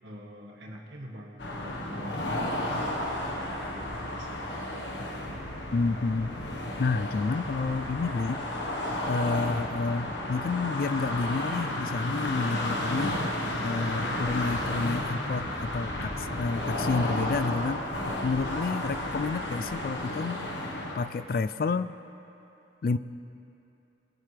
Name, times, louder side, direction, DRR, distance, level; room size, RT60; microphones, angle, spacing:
voice 1, 0.0-4.6, equal, 75° right, -1 dB, 1.6 m, -46 dB
sound 1, 1.4-21.0, left 1 dB, 80° left, 1.4 m, -32 dB
voice 2, 5.7-6.3 6.8-8.4 9.1-13.2 13.6-17.8 18.2-20.5 20.9-21.9 22.8-23.0, left 4 dB, 50° left, 14 dB, 0.3 m, -29 dB
20.5 x 10.5 x 3.4 m, 2.9 s
head